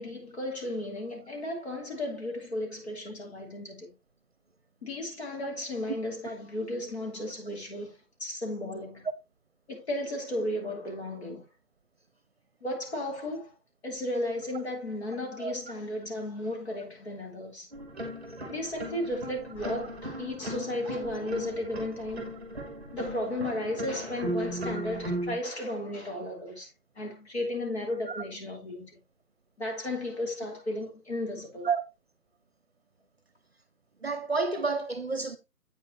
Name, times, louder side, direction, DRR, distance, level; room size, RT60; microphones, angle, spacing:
voice 1, 0.0-3.9 4.8-9.1 9.7-11.4 12.6-13.5 13.8-17.7 18.5-22.3 22.9-26.7 27.0-28.9 29.6-31.7, left 1 dB, 40° left, 4.0 m, -34 dB
sound 1, 17.7-25.4, equal, ahead, 2.2 m, -37 dB
voice 2, 34.0-35.4, right 4 dB, 40° right, 1.0 m, -29 dB
8.9 x 7.6 x 3.1 m
figure-of-eight pair, 160°, 47 cm